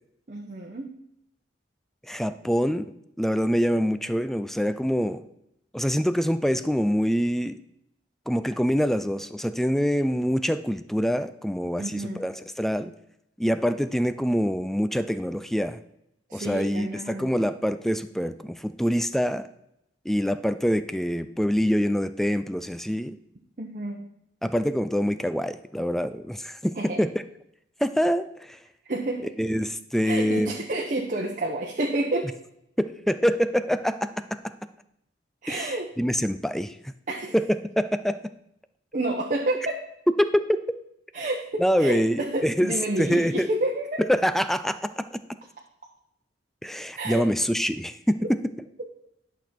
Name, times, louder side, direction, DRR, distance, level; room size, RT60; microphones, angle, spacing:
voice 1, 0.3-0.9 11.8-12.2 16.3-17.5 23.6-24.1 26.8-27.0 28.8-29.3 30.0-32.3 35.4-35.9 37.1-37.4 38.9-39.8 41.1-44.0 46.9-47.2, right 2 dB, 45° right, 0 dB, 0.9 m, -29 dB
voice 2, 2.1-2.9 3.2-5.2 5.7-7.6 8.3-12.9 13.4-15.8 16.3-19.4 20.1-23.2 24.4-27.1 27.8-28.6 29.4-30.5 32.8-34.2 35.5-36.8 37.3-37.4 37.8-38.2 40.2-40.6 41.6-43.5 44.1-45.2 46.6-48.4, equal, ahead, 12 dB, 0.3 m, -25 dB
10.5 x 6.1 x 4.3 m, 0.79 s
head